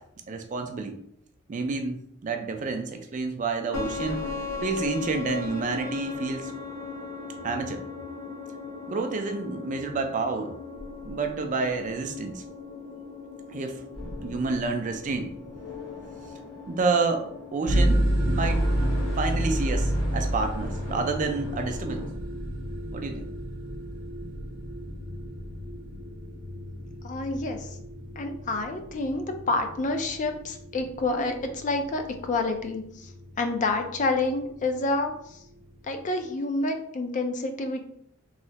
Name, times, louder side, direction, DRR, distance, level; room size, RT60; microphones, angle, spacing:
voice 1, 0.3-1.0 1.5-2.0 2.2-4.2 4.6-6.5 7.4-7.8 8.9-10.5 11.0-12.4 13.5-13.8 14.2-15.3 16.7-17.3 17.5-18.0 18.3-18.7 19.2-22.1 22.9-23.3, right 3 dB, 35° right, 5 dB, 0.4 m, -29 dB
sound 1, 3.7-22.1, left 4 dB, 90° left, 1.0 m, -39 dB
sound 2, 17.7-36.2, right 1 dB, 70° right, 0.7 m, -31 dB
voice 2, 27.0-27.7 28.2-33.1 33.4-35.1 35.9-37.8, left 2 dB, 35° left, 5 dB, 0.4 m, -28 dB
3.1 x 2.7 x 2.8 m, 0.72 s
head